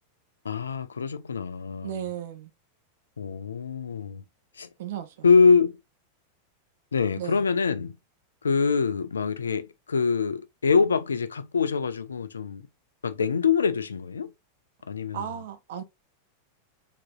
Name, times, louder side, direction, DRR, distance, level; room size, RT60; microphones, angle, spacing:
voice 1, 0.4-1.9 3.2-4.2 4.6-4.7 5.2-5.8 6.9-8.0 8.4-12.6 13.0-14.3 14.9-15.2, left 5 dB, 70° left, 0.4 m, -24 dB
voice 2, 1.8-2.5 4.8-5.3 7.2-7.4 15.1-15.8, right 10 dB, 55° right, 0.8 m, -35 dB
3.9 x 3.7 x 2.4 m
figure-of-eight pair, 90°, 0 cm